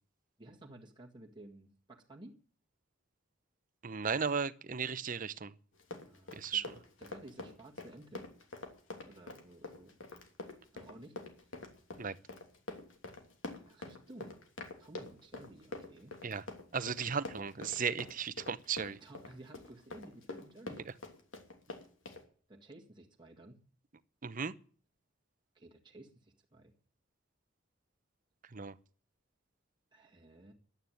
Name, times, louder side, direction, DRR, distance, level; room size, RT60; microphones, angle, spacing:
voice 1, 0.4-2.4 6.0-6.6 7.0-8.3 9.0-10.2 10.7-11.2 11.4-11.5 13.6-14.4 14.8-16.1 18.9-20.8 22.5-23.6 25.5-26.7 29.9-30.5, right 1 dB, 25° right, 1.8 m, -54 dB
voice 2, 3.8-5.5 6.3-6.7 12.0-12.2 16.2-16.4 16.7-19.0 24.2-24.5 28.5-28.7, right 6 dB, 45° right, 0.8 m, -35 dB
Run, 5.7-22.2, left 2 dB, 90° left, 3.0 m, -46 dB
11.5 x 9.2 x 9.2 m
head